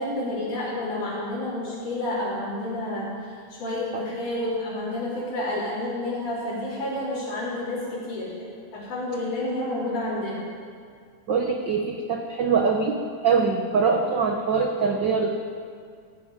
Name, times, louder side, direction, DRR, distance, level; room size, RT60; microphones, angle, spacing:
voice 1, 0.0-3.1 3.5-8.5 8.7-10.4, left 1 dB, 80° left, -12 dB, 5.2 m, -29 dB
voice 2, 11.3-15.3, right 5 dB, 80° right, 2 dB, 1.0 m, -23 dB
17.5 x 16.0 x 5.1 m, 2.2 s
omnidirectional pair, 3.5 m